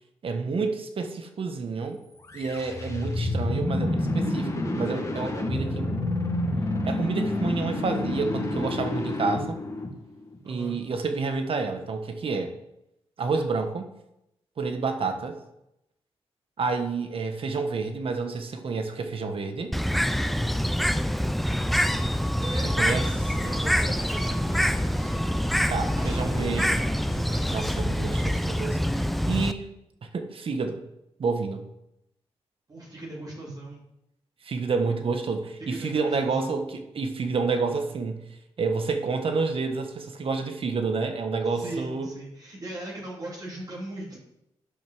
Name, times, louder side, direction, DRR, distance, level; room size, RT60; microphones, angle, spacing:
voice 1, 0.2-2.0 2.3-6.0 6.9-9.6 10.5-12.5 13.2-13.9 14.6-15.4 16.6-19.7 22.8-23.1 23.4-23.5 25.7-26.7 27.5-29.7 30.0-30.8 31.2-31.6 34.4-38.2 38.6-42.1, right 4 dB, 60° right, 6 dB, 1.4 m, -29 dB
sound 1, 2.2-10.4, left 1 dB, 30° left, 1.9 m, -28 dB
voice 2, 10.4-10.7 22.4-25.2 26.0-26.8 27.0-27.6 32.7-33.8 35.6-36.6 41.5-44.2, right 1 dB, 35° right, -4 dB, 2.7 m, -39 dB
Bird, 19.7-29.5, equal, ahead, 0.5 m, -25 dB
10.5 x 5.6 x 6.2 m, 0.85 s
cardioid pair, 75°, 11 cm